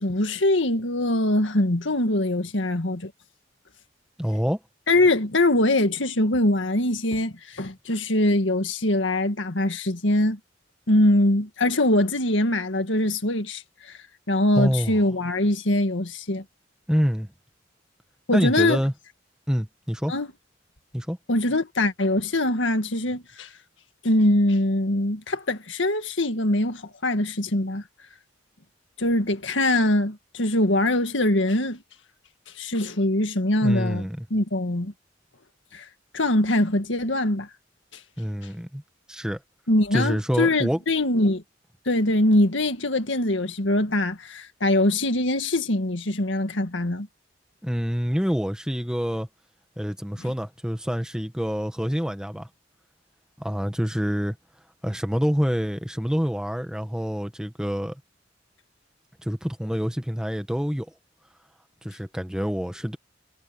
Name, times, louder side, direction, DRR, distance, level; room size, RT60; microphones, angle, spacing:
voice 1, 0.0-3.1 4.9-10.4 10.9-14.0 14.3-16.4 18.3-18.8 20.1-20.3 21.3-23.5 24.0-27.8 29.0-31.8 32.6-34.0 34.3-34.9 35.7-35.9 36.1-37.5 39.7-41.4 41.9-47.1, left 1 dB, 75° left, 1.9 m, -23 dB
voice 2, 4.2-4.6 14.5-15.0 16.9-17.3 18.3-18.9 19.5-20.1 20.9-21.2 33.6-34.3 38.2-38.8 39.1-39.4 39.9-40.8 47.6-49.3 49.8-52.5 53.4-54.4 54.8-58.0 59.2-60.9 61.8-63.0, equal, 5° right, 1.5 m, -26 dB
head